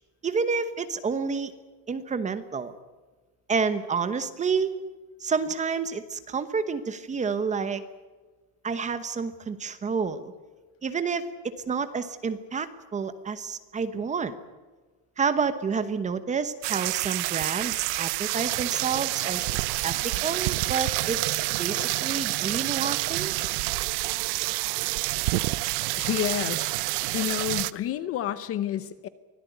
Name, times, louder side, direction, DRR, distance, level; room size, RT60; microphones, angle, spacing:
voice 1, 0.2-1.5 1.9-2.7 3.5-4.7 5.2-7.8 8.6-10.3 10.8-12.7 12.9-14.3 15.2-19.5 19.8-23.3, right 5 dB, 15° right, 11 dB, 1.0 m, -29 dB
sound 1, 16.6-27.7, right 22 dB, 60° right, 0.9 m, -28 dB
voice 2, 25.9-26.8 27.1-29.1, left 11 dB, 30° left, 14 dB, 0.8 m, -30 dB
24.5 x 17.0 x 9.4 m, 1.3 s
cardioid pair, 175°, 47 cm